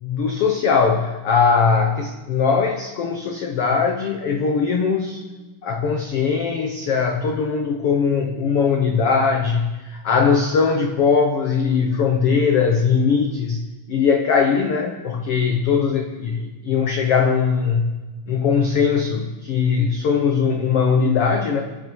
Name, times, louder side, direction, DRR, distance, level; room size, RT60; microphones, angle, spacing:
voice 1, 0.0-5.2 5.6-17.9 18.3-21.6, left 5 dB, 70° left, 4 dB, 1.4 m, -20 dB
27.0 x 9.7 x 4.7 m, 1.2 s
omnidirectional pair, 4.0 m